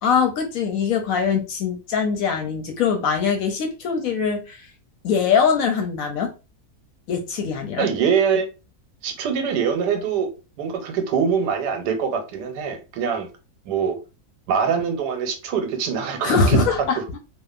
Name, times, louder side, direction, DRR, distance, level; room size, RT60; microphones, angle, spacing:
voice 1, 0.0-4.7 5.0-6.3 7.1-7.9 16.2-17.0, left 6 dB, 70° left, 0.9 m, -22 dB
voice 2, 7.8-8.5 9.0-10.3 10.6-13.3 13.7-14.0 14.5-16.7, right 6 dB, 85° right, 1.2 m, -23 dB
2.8 x 2.1 x 2.3 m
omnidirectional pair, 1.8 m